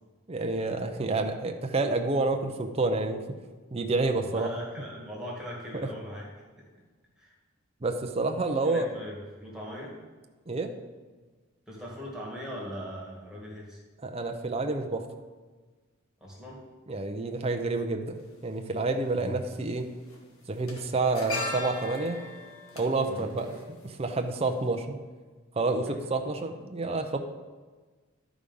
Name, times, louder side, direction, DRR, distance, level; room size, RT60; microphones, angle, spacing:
voice 1, 0.3-3.2 3.7-4.5 5.7-5.9 7.8-8.9 10.5-10.7 14.0-15.0 16.9-19.9 20.5-22.2 22.8-23.5 23.8-25.0 25.6-27.2, right 3 dB, 30° right, 5 dB, 0.6 m, -29 dB
voice 2, 4.2-6.3 7.2-7.3 8.6-9.9 11.7-13.8 16.2-16.6 19.2-19.4 23.1-23.2 25.9-26.0, equal, 5° right, -4 dB, 2.1 m, -40 dB
sound 1, 18.2-18.3 19.5-19.8 20.0-24.3 24.6-24.8, left 2 dB, 70° left, 1.6 m, -38 dB
11.5 x 5.0 x 5.3 m, 1.4 s
head